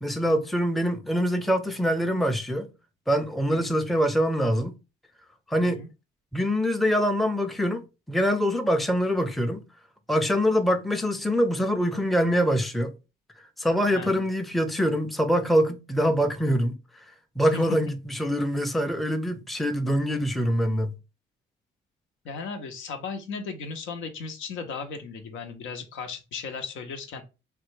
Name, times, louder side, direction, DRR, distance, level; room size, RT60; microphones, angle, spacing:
voice 1, 0.0-2.7 3.1-4.7 5.5-5.8 6.3-9.6 10.1-12.9 13.6-16.7 17.4-20.9, equal, ahead, 0.5 m, -24 dB
voice 2, 13.9-14.2 17.5-17.6 22.2-27.2, left 5 dB, 80° left, 0.7 m, -36 dB
3.2 x 2.2 x 3.1 m
cardioid pair, 90°, 20 cm